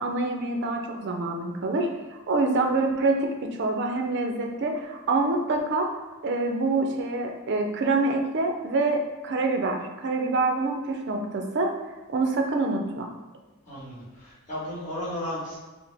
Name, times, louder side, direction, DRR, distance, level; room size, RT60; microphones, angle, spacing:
voice 1, 0.0-5.9 6.2-11.7 12.1-13.1, right 3 dB, 50° right, 3 dB, 0.5 m, -26 dB
voice 2, 13.6-15.6, left 1 dB, 35° left, -8 dB, 1.5 m, -34 dB
4.6 x 2.1 x 3.4 m, 1.2 s
head